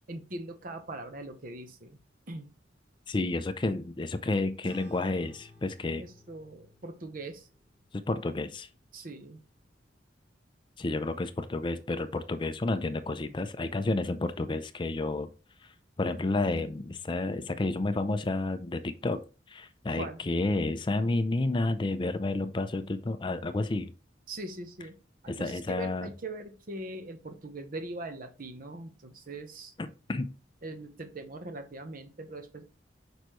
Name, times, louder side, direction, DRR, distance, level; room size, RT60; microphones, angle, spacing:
voice 1, 0.1-2.0 2.3-2.5 6.0-7.5 8.9-9.4 19.9-20.2 24.3-24.9 25.2-29.7 30.6-32.6, right 2 dB, 50° right, 7 dB, 0.9 m, -41 dB
voice 2, 3.1-6.0 7.9-8.7 10.8-15.3 15.6-15.7 16.0-19.2 19.5-23.9 25.3-26.1 29.8-30.3, left 2 dB, 25° left, 10 dB, 0.4 m, -30 dB
sound 1, 4.6-9.5, left 1 dB, 25° right, 2.2 m, -56 dB
6.4 x 5.2 x 3.0 m, 0.34 s
head